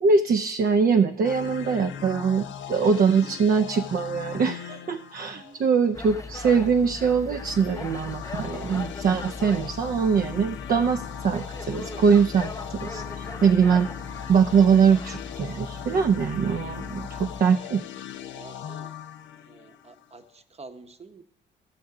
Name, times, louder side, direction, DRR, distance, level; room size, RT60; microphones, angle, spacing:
voice 1, 0.0-13.9 14.3-17.8, right 6 dB, 50° right, 6 dB, 0.5 m, -22 dB
sound 1, 1.2-6.1 7.2-20.3, left 10 dB, 70° left, 0.6 m, -39 dB
voice 2, 5.3-5.7 18.3-18.9 19.5-21.2, right 3 dB, 30° right, 8 dB, 0.9 m, -47 dB
sound 2, 5.9-17.4, left 3 dB, 15° left, 0.6 m, -39 dB
14.5 x 6.2 x 4.8 m, 0.78 s
cardioid pair, 90°, 20 cm